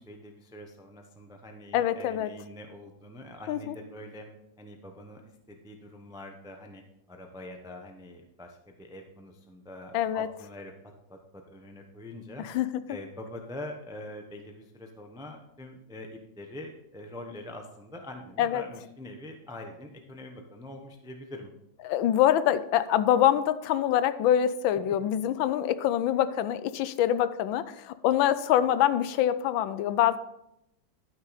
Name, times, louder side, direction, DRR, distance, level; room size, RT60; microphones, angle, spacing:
voice 1, 0.0-4.3 4.6-6.8 7.1-10.7 11.1-12.5 12.9-21.5, left 1 dB, 5° right, 3 dB, 0.3 m, -44 dB
voice 2, 1.7-2.3 3.5-3.7 9.9-10.3 12.5-12.7 18.4-18.6 21.8-30.2, left 11 dB, 80° left, 14 dB, 1.3 m, -25 dB
12.0 x 6.2 x 4.1 m, 0.83 s
omnidirectional pair, 2.1 m